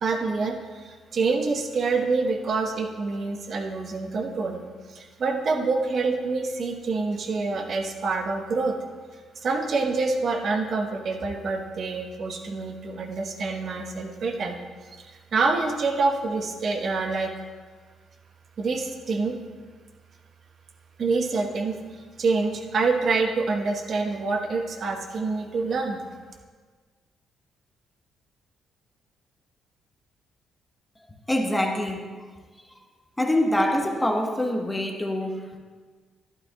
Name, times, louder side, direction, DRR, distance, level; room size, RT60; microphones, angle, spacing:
voice 1, 0.0-4.6 4.9-8.8 9.4-14.6 15.0-17.3 18.6-19.4 21.0-21.8 22.2-26.0, right 4 dB, 55° right, 3 dB, 1.1 m, -26 dB
voice 2, 31.3-32.0 33.2-35.6, left 1 dB, 10° left, 2 dB, 1.3 m, -25 dB
12.0 x 11.5 x 2.4 m, 1.5 s
cardioid pair, 90°, 0 cm